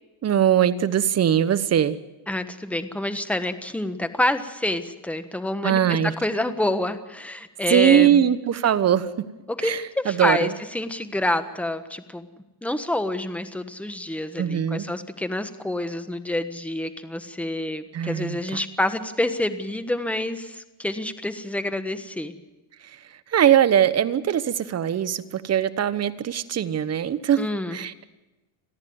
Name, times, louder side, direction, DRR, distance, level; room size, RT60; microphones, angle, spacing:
voice 1, 0.2-2.0 5.6-6.1 7.7-9.3 9.6-10.5 14.4-14.9 17.9-18.6 22.8-27.4 27.7-28.0, right 9 dB, 35° right, 13 dB, 1.1 m, -21 dB
voice 2, 2.3-8.2 9.6-12.3 12.6-22.3 27.4-27.8, left 1 dB, 5° left, 9 dB, 1.3 m, -27 dB
30.0 x 10.5 x 9.5 m, 1.1 s
cardioid pair, 125°, 45 cm